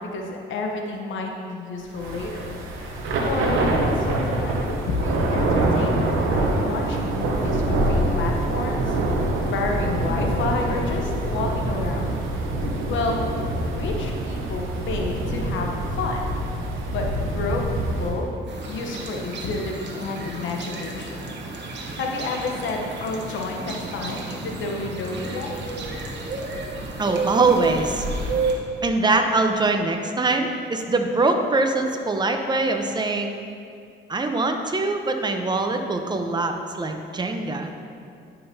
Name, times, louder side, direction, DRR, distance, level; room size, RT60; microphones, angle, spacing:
voice 1, 0.0-9.0 9.5-12.2 12.9-13.2 13.7-16.3 16.9-18.3 18.6-21.4 22.0-25.6, left 3 dB, 75° left, 1 dB, 0.9 m, -30 dB
Thunder / Rain, 1.9-18.2, right 1 dB, 85° right, 0.8 m, -25 dB
sound 1, 18.5-28.5, right 3 dB, 60° right, 1.0 m, -31 dB
voice 2, 27.0-28.1 28.8-33.4 34.1-37.7, right 3 dB, 20° right, 5 dB, 0.7 m, -23 dB
9.8 x 5.7 x 2.7 m, 2.4 s
cardioid pair, 90°, 20 cm